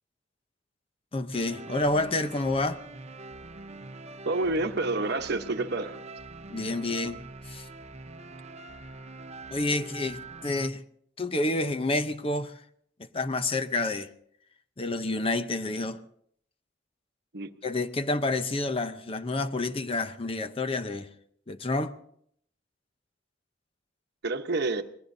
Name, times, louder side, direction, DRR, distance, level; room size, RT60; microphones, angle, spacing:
voice 1, 1.1-2.8 6.5-7.2 7.5-7.7 9.5-10.8 11.2-12.5 13.0-14.1 14.8-16.0 17.6-21.1 21.5-21.9, left 2 dB, 30° left, 0.7 m, -29 dB
sound 1, 1.3-10.7, right 3 dB, 35° right, 0.8 m, -44 dB
voice 2, 4.2-6.0 17.3-17.5 24.2-24.8, right 2 dB, 60° right, 1.0 m, -28 dB
26.0 x 20.5 x 2.7 m
head